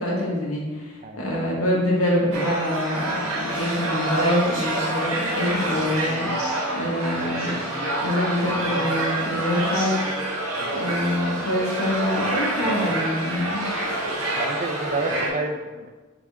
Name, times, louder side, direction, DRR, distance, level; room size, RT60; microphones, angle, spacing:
voice 1, 0.0-7.6 8.0-10.0 10.7-13.6, left 1 dB, 90° left, -3 dB, 1.7 m, -25 dB
sound 1, 2.3-15.3, right 1 dB, 90° right, 1.7 m, -27 dB
voice 2, 14.0-15.9, right 3 dB, 35° right, 5 dB, 0.5 m, -30 dB
6.7 x 3.8 x 3.7 m, 1.3 s
head